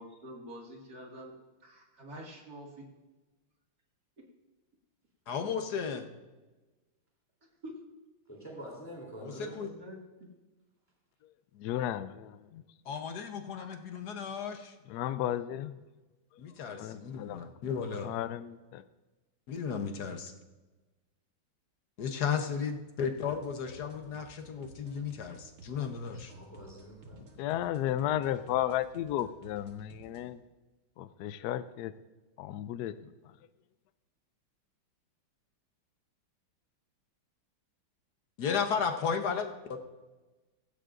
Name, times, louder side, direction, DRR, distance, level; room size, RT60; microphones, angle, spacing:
voice 1, 0.0-1.3 1.6-2.8 7.6-7.8 9.3-10.3, equal, 45° right, -1 dB, 2.5 m, -47 dB
voice 2, 5.3-6.1 9.2-9.7 12.8-14.7 16.4-18.1 19.5-20.3 22.0-26.3 38.4-39.5, left 6 dB, 55° left, 5 dB, 1.4 m, -34 dB
voice 3, 8.3-9.7 26.1-27.2, right 1 dB, 5° left, -3 dB, 2.9 m, -46 dB
voice 4, 11.5-12.6 14.9-15.8 16.8-17.4 18.0-18.8 27.2-30.4 31.0-31.9 32.4-33.1, left 12 dB, 85° left, 13 dB, 0.8 m, -34 dB
sound 1, 23.2-30.2, right 2 dB, 80° right, 2.3 m, -54 dB
16.0 x 15.5 x 2.6 m, 1.2 s
omnidirectional pair, 2.3 m